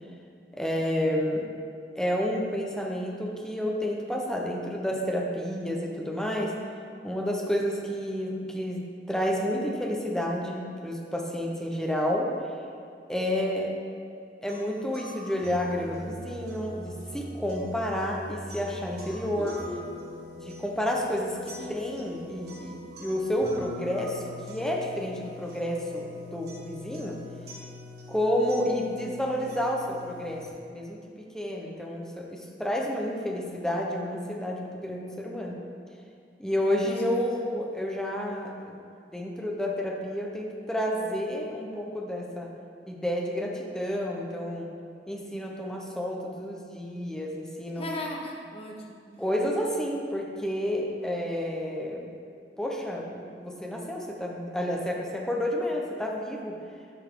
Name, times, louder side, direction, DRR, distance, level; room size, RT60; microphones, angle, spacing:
voice 1, 0.5-1.5 2.0-6.6 7.0-12.3 13.1-13.7 14.4-19.6 20.4-27.2 28.1-31.0 31.3-35.6 36.4-38.8 39.1-42.5 42.9-44.7 45.1-47.9 49.2-52.1 52.6-56.6, equal, 5° left, -1 dB, 0.8 m, -30 dB
sound 1, 14.5-30.5, equal, 60° right, 1.8 m, -43 dB
voice 2, 19.4-19.9 21.6-21.8 36.9-37.4 47.8-49.0, left 1 dB, 35° left, 0 dB, 0.9 m, -37 dB
10.5 x 5.4 x 3.7 m, 2.3 s
head